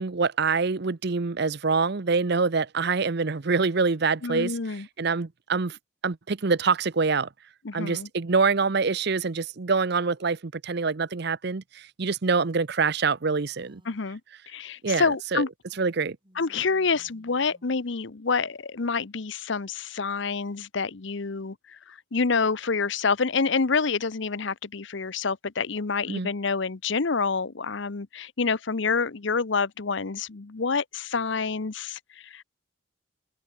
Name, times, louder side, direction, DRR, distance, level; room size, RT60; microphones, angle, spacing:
voice 1, 0.0-5.8 6.0-7.3 7.7-13.8 14.8-15.4 15.8-16.2 26.1-26.3, right 4 dB, 50° right, 0.7 m, -25 dB
voice 2, 4.2-4.9 7.6-8.1 13.9-14.2 14.5-15.5 16.4-32.4, left 4 dB, 60° left, 0.8 m, -27 dB
Female speech woman speaking, 13.5-14.1 15.6-17.9, equal, 25° right, 6.2 m, -60 dB
open air
head